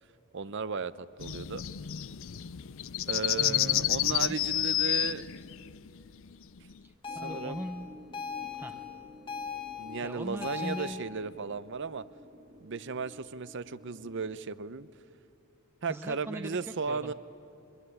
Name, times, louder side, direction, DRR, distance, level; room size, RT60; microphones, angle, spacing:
voice 1, 0.3-1.6 3.1-5.3 7.2-7.6 8.4-8.5 9.8-12.0 12.6-14.9 15.8-17.1, right 5 dB, 55° right, 16 dB, 0.7 m, -35 dB
sound 1, 1.2-6.7, left 13 dB, 65° left, 0.5 m, -30 dB
voice 2, 3.4-4.4 6.8-7.9 8.5-8.8 10.0-11.0 15.9-16.6 16.9-17.1, right 1 dB, 10° right, 7 dB, 0.6 m, -40 dB
sound 2, 7.0-10.9, left 7 dB, 25° left, 1.7 m, -39 dB
sound 3, 7.0-14.3, equal, 35° right, 2.1 m, -51 dB
23.5 x 23.0 x 10.0 m, 2.7 s
head